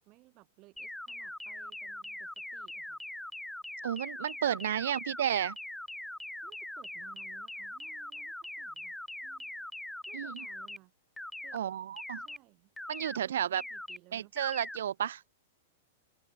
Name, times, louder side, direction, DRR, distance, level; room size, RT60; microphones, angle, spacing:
voice 1, 0.0-3.0 4.5-4.6 6.4-9.0 9.2-9.7 10.1-10.9 11.4-11.8 12.2-12.7 13.0-14.3, right 20 dB, 30° right, 6.3 m, -60 dB
sound 1, 0.8-10.8 11.2-11.6 12.0-12.4 12.8-13.2 13.6-14.0 14.4-14.8, left 1 dB, ahead, 1.3 m, -42 dB
voice 2, 3.8-5.6 10.1-10.5 11.5-12.2 12.9-13.6 14.1-15.2, right 10 dB, 85° right, 0.4 m, -32 dB
open air
supercardioid pair, 165°, 0 cm